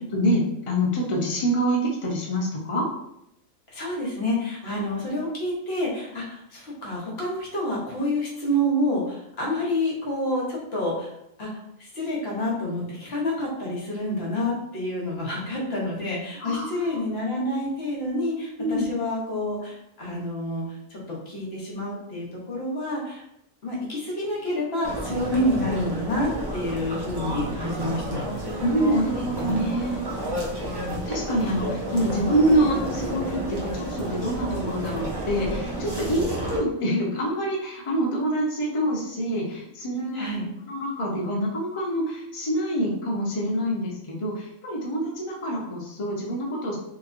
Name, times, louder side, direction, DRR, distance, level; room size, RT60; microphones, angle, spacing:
voice 1, 0.1-2.9 16.4-17.0 18.6-18.9 28.6-30.0 30.7-40.3 40.6-46.8, equal, 30° left, -3 dB, 0.6 m, -26 dB
voice 2, 3.7-11.1 11.4-23.2 23.6-28.6 40.1-40.5, left 1 dB, 55° left, -4 dB, 1.1 m, -28 dB
sound 1, 24.8-36.6, right 1 dB, 35° right, 0.4 m, -31 dB
3.0 x 2.9 x 2.5 m, 0.79 s
omnidirectional pair, 1.4 m